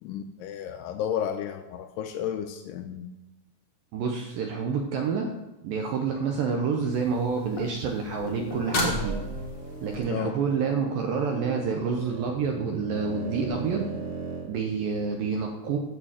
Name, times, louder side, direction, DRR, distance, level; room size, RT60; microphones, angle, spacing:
voice 1, 0.0-3.1 10.1-10.4, left 9 dB, 80° left, 7 dB, 2.5 m, -32 dB
voice 2, 3.9-5.3 5.6-9.2 9.8-13.9 14.4-15.8, right 5 dB, 75° right, 2 dB, 2.1 m, -28 dB
sound 1, 6.9-10.0 13.5-13.6, left 1 dB, 55° left, 1.1 m, -33 dB
sound 2, 8.3-14.5, right 4 dB, 25° right, 1.8 m, -38 dB
9.1 x 6.8 x 7.4 m, 0.99 s
omnidirectional pair, 5.1 m